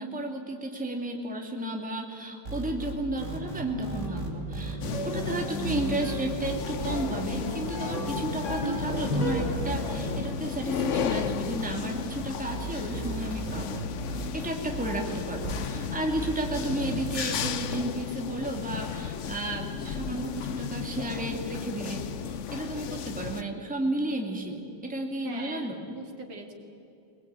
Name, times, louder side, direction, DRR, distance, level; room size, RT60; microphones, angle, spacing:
voice 1, 0.0-13.9 14.3-25.8, right 1 dB, 5° right, 1 dB, 2.2 m, -33 dB
sound 1, 2.5-17.8, right 3 dB, 35° right, 3.3 m, -37 dB
sound 2, 3.3-10.2, equal, 70° left, 5.2 m, -34 dB
sound 3, 4.8-23.4, left 8 dB, 90° left, 0.6 m, -34 dB
voice 2, 25.0-26.5, right 3 dB, 65° right, 3 dB, 3.2 m, -43 dB
21.5 x 21.5 x 8.9 m, 2.8 s
omnidirectional pair, 2.3 m